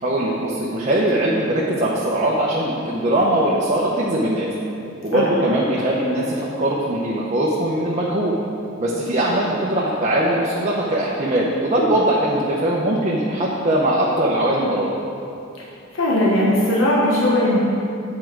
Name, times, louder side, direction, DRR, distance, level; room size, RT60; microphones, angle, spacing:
voice 1, 0.0-4.5 5.0-8.4 8.8-14.9, right 1 dB, 35° right, -4 dB, 0.7 m, -21 dB
voice 2, 15.9-17.6, left 1 dB, 85° left, -6 dB, 1.2 m, -18 dB
8.6 x 4.8 x 4.6 m, 2.6 s
head